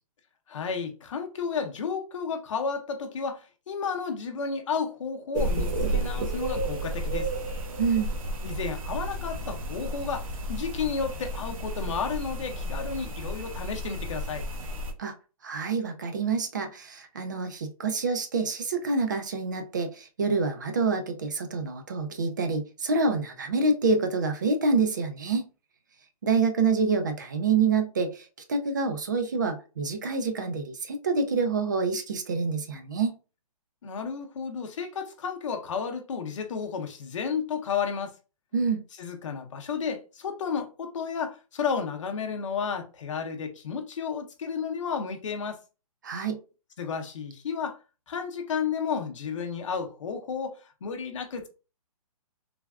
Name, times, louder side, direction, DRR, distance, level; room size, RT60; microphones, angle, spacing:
voice 1, 0.5-7.3 8.4-14.4 33.8-38.1 39.0-45.6 46.8-47.8 48.1-51.5, left 6 dB, 55° left, 0.7 m, -32 dB
sound 1, 5.3-14.9, right 1 dB, 65° right, 0.8 m, -32 dB
voice 2, 7.8-8.1 15.0-15.1 15.4-25.5 26.2-33.2 38.5-38.8 46.0-46.4, right 4 dB, 30° right, 0.3 m, -27 dB
3.3 x 2.2 x 2.2 m
hypercardioid pair, 170°, 19 cm